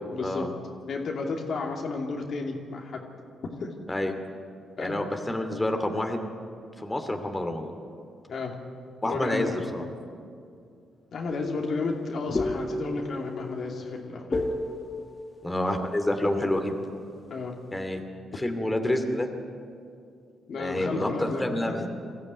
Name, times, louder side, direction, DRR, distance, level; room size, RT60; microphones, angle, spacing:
voice 1, 0.1-0.5 0.9-3.1 3.6-3.7 4.8-5.0 8.3-8.6 9.0-9.9 11.1-14.5 17.3-17.6 20.5-21.9, left 3 dB, 60° left, 1 dB, 2.8 m, -32 dB
voice 2, 4.8-6.2 6.8-7.7 9.0-9.8 15.4-16.7 17.7-18.0 18.4-19.3 20.6-21.8, left 1 dB, 15° left, 5 dB, 2.5 m, -28 dB
sound 1, 11.3-16.9, left 2 dB, 35° left, 1.2 m, -34 dB
21.5 x 14.0 x 9.4 m, 2.4 s
supercardioid pair, 55°, 0 cm